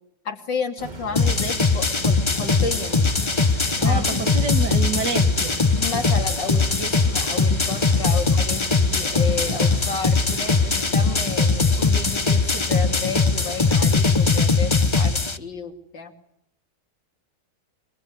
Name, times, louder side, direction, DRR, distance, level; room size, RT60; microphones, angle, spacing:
voice 1, 0.3-3.3 3.8-4.2 5.8-16.1, left 4 dB, 85° left, 4 dB, 3.5 m, -32 dB
sound 1, 0.8-13.9, right 2 dB, 25° right, 1.8 m, -37 dB
sound 2, 0.9-10.8, left 1 dB, 5° left, 7.8 m, -50 dB
sound 3, 1.2-15.4, left 4 dB, 20° left, 0.8 m, -20 dB
voice 2, 3.8-5.6, right 5 dB, 70° right, 8 dB, 2.5 m, -28 dB
24.0 x 24.0 x 9.6 m, 0.76 s
omnidirectional pair, 1.9 m